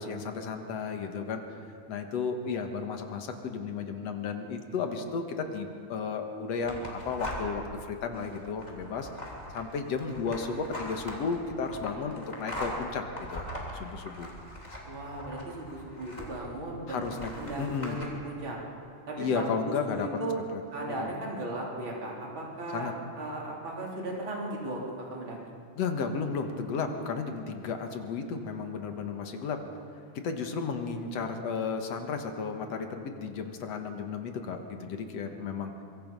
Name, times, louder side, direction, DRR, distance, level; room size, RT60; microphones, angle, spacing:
voice 1, 0.0-1.4 1.9-9.1 9.5-13.5 13.7-14.3 16.9-18.0 19.2-20.1 20.5-20.6 20.9-21.1 22.7-22.9 25.8-29.6 30.1-35.7, left 5 dB, 60° left, 5 dB, 2.4 m, -33 dB
sound 1, 6.6-7.7 8.2-16.6 17.0-18.1, left 1 dB, 15° left, 3.2 m, -41 dB
voice 2, 14.8-17.1 17.4-18.0 18.2-18.6 19.1-20.3 20.7-24.8 25.1-25.4, right 2 dB, 40° right, -3 dB, 4.3 m, -36 dB
24.5 x 23.0 x 5.4 m, 2.5 s
omnidirectional pair, 3.5 m